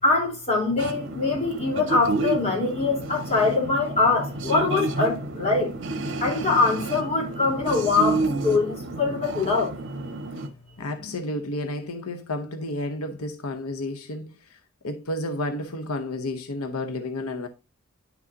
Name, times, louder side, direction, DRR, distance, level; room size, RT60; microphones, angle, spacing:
voice 1, 0.0-5.7 6.2-9.7, left 3 dB, 30° left, 3.9 m, -23 dB
sound 1, 0.8-10.5, right 2 dB, 60° right, 1.3 m, -30 dB
voice 2, 10.8-14.6 14.8-17.5, left 1 dB, 90° left, 0.9 m, -31 dB
10.5 x 6.1 x 2.8 m
head